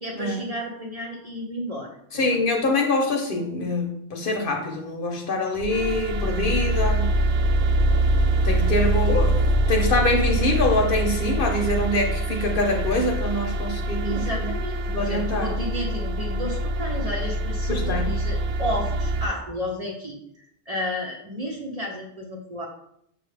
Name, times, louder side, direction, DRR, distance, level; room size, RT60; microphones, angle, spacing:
voice 1, 0.0-2.4 8.5-8.7 14.0-20.2 20.7-22.7, left 1 dB, 40° right, -1 dB, 0.6 m, -32 dB
voice 2, 2.1-7.1 8.4-14.5 14.9-15.5 17.7-18.1, left 2 dB, 55° left, 2 dB, 0.8 m, -24 dB
sound 1, 5.6-19.3, right 1 dB, 85° right, 0.9 m, -24 dB
6.4 x 2.4 x 3.3 m, 0.73 s
omnidirectional pair, 1.2 m